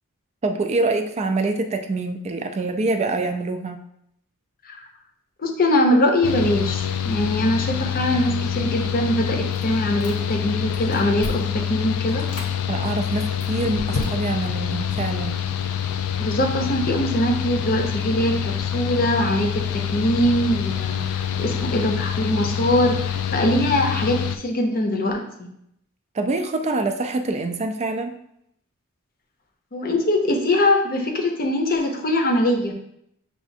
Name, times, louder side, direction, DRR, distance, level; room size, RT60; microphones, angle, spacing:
voice 1, 0.4-3.8 12.7-15.4 26.1-28.2, right 2 dB, 30° right, 6 dB, 0.3 m, -25 dB
voice 2, 5.4-12.2 16.2-25.5 29.7-32.7, left 1 dB, 40° left, 3 dB, 0.6 m, -22 dB
Mechanical fan, 6.2-24.4, left 9 dB, 70° left, 0.3 m, -26 dB
Chewing mastication, 9.5-10.4 10.7-11.6 12.1-12.5 13.1-14.5, left 2 dB, 85° left, 1.1 m, -33 dB
6.9 x 2.4 x 2.6 m, 0.76 s
head